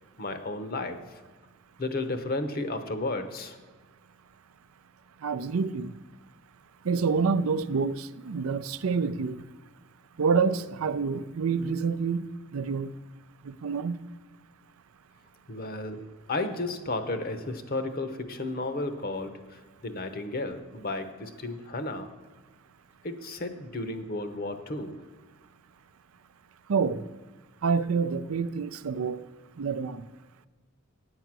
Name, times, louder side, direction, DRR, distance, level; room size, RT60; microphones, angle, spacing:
voice 1, 0.2-1.2 1.8-3.6 15.5-22.1 23.0-25.0, left 2 dB, 45° left, 0.9 m, -33 dB
voice 2, 5.2-5.9 6.8-9.4 10.2-12.3 12.5-13.0 13.4-13.9 26.7-27.0 27.6-29.2 29.6-30.0, right 5 dB, 85° right, 0.5 m, -27 dB
9.3 x 7.8 x 6.0 m
head